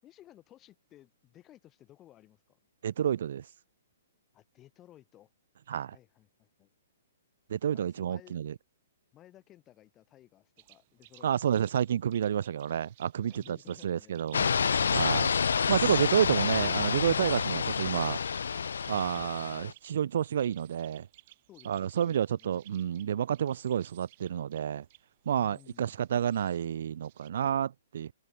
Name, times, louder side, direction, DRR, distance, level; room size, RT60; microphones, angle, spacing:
voice 1, 0.0-2.6 4.3-5.3 5.9-6.7 7.7-8.3 9.1-11.5 13.3-14.2 21.5-22.6 25.4-26.0, left 13 dB, 25° left, 5.9 m, -57 dB
voice 2, 2.8-3.5 5.7-6.0 7.5-8.5 11.2-13.6 13.8-15.3 15.7-18.2 18.9-21.1 21.7-24.9 25.3-28.1, right 9 dB, 65° right, 0.4 m, -30 dB
sound 1, 10.6-27.3, right 17 dB, 45° right, 1.7 m, -59 dB
sound 2, 14.3-19.7, left 6 dB, 80° left, 0.5 m, -28 dB
hypercardioid pair, 140°, 0 cm